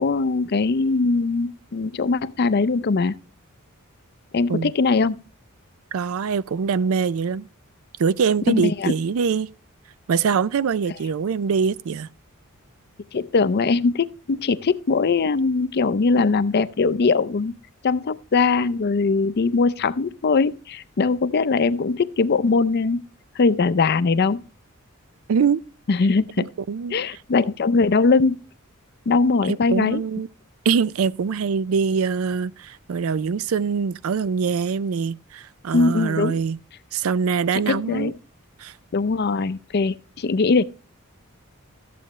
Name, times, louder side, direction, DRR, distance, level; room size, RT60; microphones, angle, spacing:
voice 1, 0.0-3.1 4.3-5.2 8.5-8.9 13.1-17.6 17.8-23.0 23.4-24.4 25.9-26.5 26.9-28.4 29.1-30.0 35.7-36.4 37.5-38.1 38.9-40.6, left 4 dB, 50° left, 0.5 m, -21 dB
voice 2, 5.9-7.5 8.0-9.5 10.1-12.1 25.3-25.6 26.4-27.0 29.5-30.3 30.7-36.6 36.9-38.1 38.6-38.7, right 6 dB, 75° right, 0.4 m, -23 dB
13.5 x 7.7 x 3.0 m
head